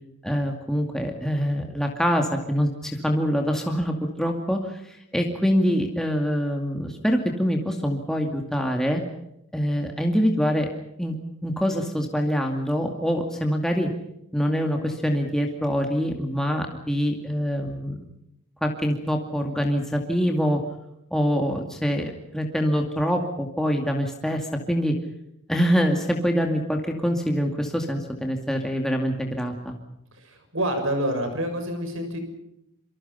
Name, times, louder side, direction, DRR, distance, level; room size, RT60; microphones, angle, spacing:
voice 1, 0.2-9.0 9.5-10.7 11.0-11.2 11.4-13.9 14.3-18.0 18.6-20.6 21.1-25.0 25.5-29.8, equal, ahead, 2 dB, 2.3 m, -25 dB
voice 2, 30.1-32.2, right 1 dB, 65° right, 7 dB, 6.6 m, -27 dB
27.5 x 25.0 x 5.7 m, 0.79 s
head